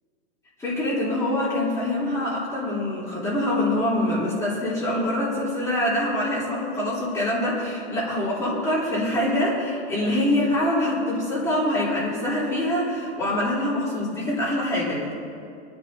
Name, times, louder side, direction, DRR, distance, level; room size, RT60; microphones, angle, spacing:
voice 1, 0.6-15.1, left 1 dB, 10° left, -8 dB, 3.2 m, -25 dB
29.0 x 10.5 x 2.7 m, 2.4 s
supercardioid pair, 165°, 33 cm